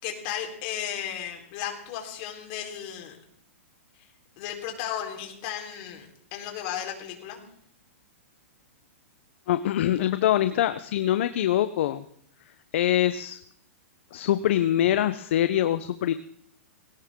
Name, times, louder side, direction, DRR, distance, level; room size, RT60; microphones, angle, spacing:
voice 1, 0.0-3.2 4.0-4.1 4.4-7.4, left 10 dB, 40° left, 2 dB, 4.2 m, -35 dB
voice 2, 9.5-12.0 12.7-13.4 14.1-16.1, left 12 dB, 60° left, 11 dB, 0.8 m, -24 dB
20.5 x 17.5 x 3.8 m, 0.68 s
hypercardioid pair, 150°, 7 cm